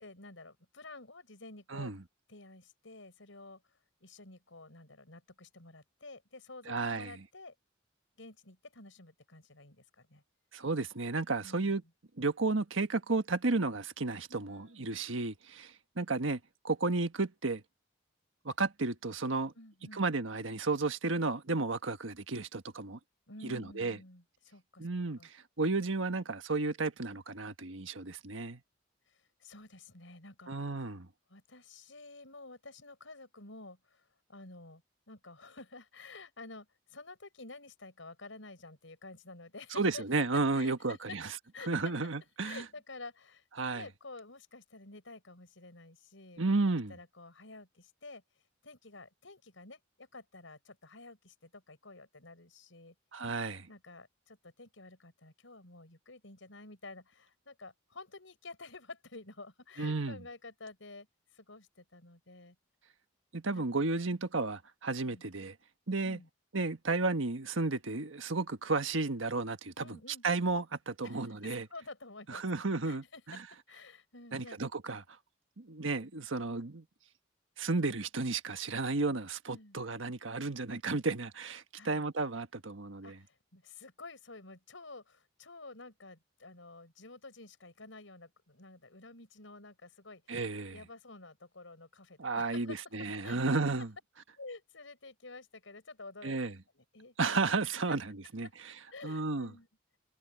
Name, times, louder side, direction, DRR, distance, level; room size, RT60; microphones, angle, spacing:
voice 1, 0.0-1.9 2.3-3.6 4.0-7.5 8.2-10.2 11.4-11.7 14.3-15.0 19.5-20.0 23.3-24.9 25.2-25.3 29.1-30.6 31.3-41.2 41.5-41.9 42.4-43.4 43.7-46.6 46.9-48.2 48.6-52.9 53.7-61.1 61.3-62.6 63.5-63.9 65.0-65.2 66.0-66.3 69.8-70.2 71.0-72.5 72.8-73.4 73.7-74.6 79.5-79.8 81.7-82.1 83.0-90.4 90.7-92.8 93.2-93.4 94.4-97.5 97.9-98.0 98.4-98.5 98.9-99.7, left 3 dB, 75° left, 5.8 m, -51 dB
voice 2, 6.7-7.1 10.5-11.8 12.2-16.4 16.6-17.6 18.4-19.5 19.9-23.0 23.4-24.0 24.8-28.6 30.5-31.1 39.8-41.3 41.7-42.6 43.6-43.8 46.4-46.9 53.1-53.7 59.8-60.2 63.3-65.5 65.9-66.2 66.5-69.9 70.2-71.6 72.3-73.4 74.3-75.0 75.6-76.8 77.6-83.2 90.3-90.8 92.2-93.9 96.2-96.5 97.2-98.7 99.0-99.5, right 3 dB, 80° right, 1.5 m, -33 dB
head